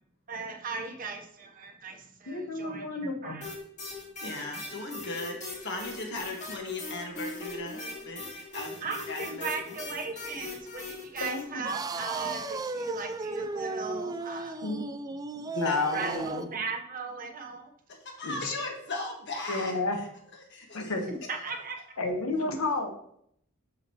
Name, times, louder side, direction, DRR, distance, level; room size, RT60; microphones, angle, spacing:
voice 1, 0.3-3.5 8.8-14.7 15.5-15.6 15.9-17.7 21.1-21.8, right 4 dB, 40° right, 2 dB, 0.9 m, -37 dB
voice 2, 2.3-3.4 11.2-11.7 14.6-14.8 15.5-16.5 18.2-18.6 19.5-20.0 20.7-21.0 22.0-22.9, left 3 dB, 85° left, 4 dB, 1.2 m, -31 dB
sound 1, 3.4-11.4, left 3 dB, 35° left, 2.5 m, -40 dB
voice 3, 4.2-9.7 15.6-16.3 17.9-19.8 20.5-21.0 22.4-22.5, left 2 dB, 55° left, 2 dB, 1.5 m, -38 dB
sound 2, 11.6-16.6, right 3 dB, 15° right, 0.3 m, -35 dB
7.8 x 6.5 x 3.0 m, 0.71 s
head